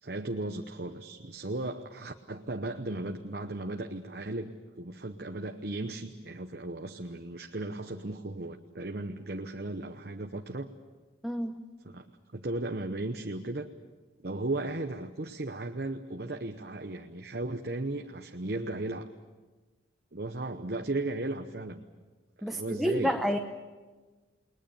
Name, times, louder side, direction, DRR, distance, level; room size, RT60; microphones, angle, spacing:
voice 1, 0.0-10.7 11.8-13.7 14.2-19.1 20.1-21.8 22.4-23.2, right 2 dB, 55° right, 5 dB, 1.0 m, -36 dB
voice 2, 11.2-11.6 22.4-23.4, equal, ahead, 4 dB, 0.8 m, -29 dB
29.5 x 20.5 x 7.0 m, 1.3 s
head